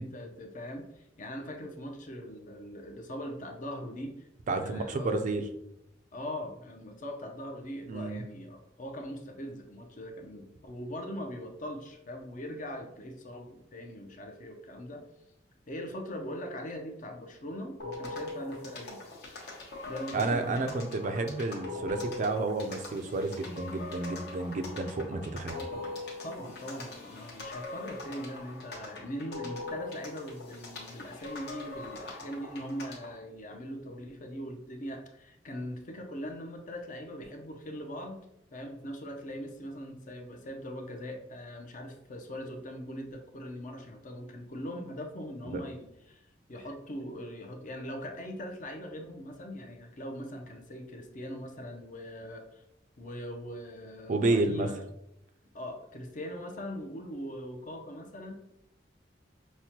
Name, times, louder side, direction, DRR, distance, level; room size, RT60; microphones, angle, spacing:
voice 1, 0.0-4.3 4.6-5.2 6.1-15.0 15.7-19.0 19.9-20.7 25.5-25.9 26.2-38.2 38.5-46.2 46.5-52.6 53.0-54.8 55.5-58.3, equal, 45° left, 3 dB, 0.6 m, -41 dB
voice 2, 4.5-5.4 7.9-8.2 20.1-25.5 45.5-45.6 54.1-54.7, right 2 dB, 45° right, 7 dB, 0.4 m, -30 dB
sound 1, 17.8-33.2, left 2 dB, 60° left, 1.0 m, -42 dB
6.0 x 2.1 x 2.8 m, 0.83 s
head